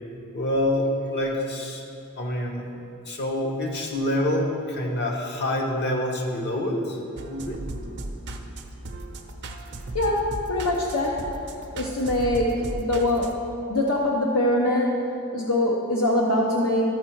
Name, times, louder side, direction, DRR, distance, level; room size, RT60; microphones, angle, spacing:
voice 1, 0.3-1.8 2.2-2.7 3.0-7.6, left 1 dB, 50° left, 0 dB, 1.1 m, -26 dB
sound 1, 7.2-13.3, right 1 dB, 50° right, 0.6 m, -36 dB
voice 2, 9.9-11.2 11.7-13.4 13.7-16.9, left 1 dB, 65° left, -2 dB, 0.8 m, -23 dB
13.0 x 4.7 x 4.5 m, 2.7 s
head